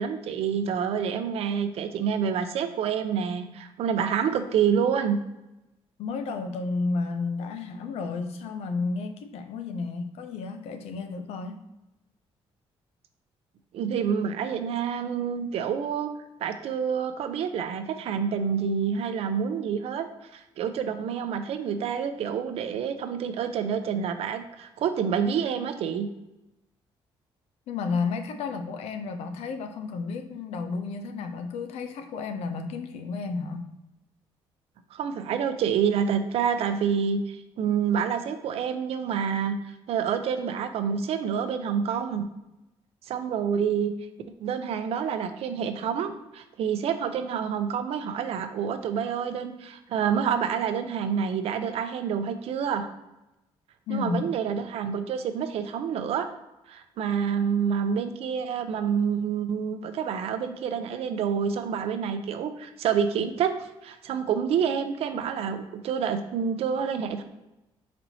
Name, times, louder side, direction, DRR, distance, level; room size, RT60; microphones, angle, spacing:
voice 1, 0.0-5.2 13.7-16.1 16.4-20.1 20.3-26.1 34.9-39.6 39.9-42.3 43.1-43.9 44.4-52.9 53.9-56.3 56.7-67.2, right 7 dB, 70° right, 8 dB, 0.5 m, -28 dB
voice 2, 6.0-11.6 27.7-33.7 53.9-54.3, left 4 dB, 85° left, 7 dB, 0.5 m, -32 dB
4.3 x 4.2 x 2.7 m, 0.95 s
cardioid pair, 120°, 11 cm